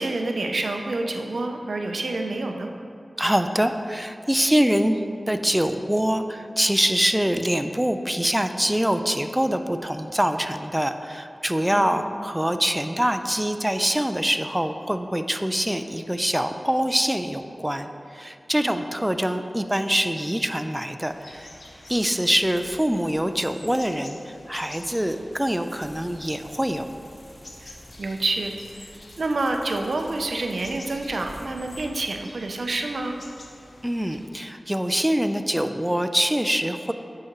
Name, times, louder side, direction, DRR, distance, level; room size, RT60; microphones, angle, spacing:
voice 1, 0.0-2.7 11.7-12.1 18.6-18.8 27.6-28.9 29.2-33.2, right 2 dB, 80° right, 4 dB, 0.4 m, -28 dB
voice 2, 3.2-5.0 5.3-21.6 21.9-26.9 33.8-36.9, equal, 10° right, 8 dB, 0.3 m, -24 dB
sound 1, 21.0-34.3, left 2 dB, 70° left, 0.7 m, -49 dB
sound 2, 21.5-31.8, equal, 20° left, 0.8 m, -50 dB
9.1 x 4.8 x 2.9 m, 2.5 s
cardioid pair, 40°, 0 cm